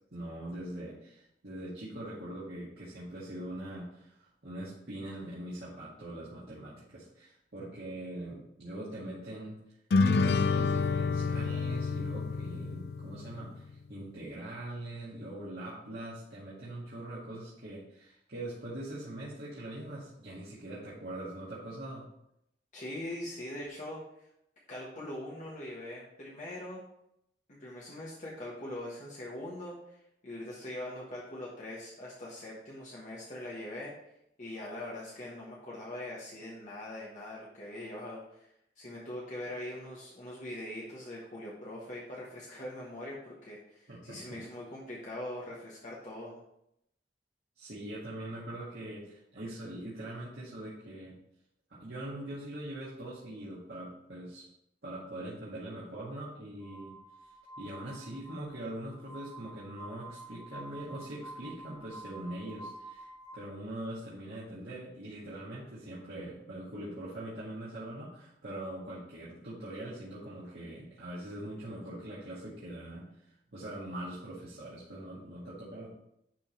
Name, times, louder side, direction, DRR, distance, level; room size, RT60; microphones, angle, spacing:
voice 1, 0.1-9.6 10.0-22.0 43.9-44.4 47.6-51.2 51.7-54.4 54.8-56.9 57.6-73.1 73.5-75.9, right 1 dB, 65° right, -9 dB, 2.0 m, -42 dB
sound 1, 9.9-13.5, left 4 dB, 60° left, 0.4 m, -28 dB
voice 2, 22.7-24.3 24.7-26.8 27.5-33.9 34.4-38.5 38.8-46.3, left 1 dB, 45° left, -6 dB, 1.5 m, -42 dB
Glass, 56.6-63.3, right 2 dB, 20° left, 2.1 m, -49 dB
10.5 x 3.6 x 4.5 m, 0.79 s
head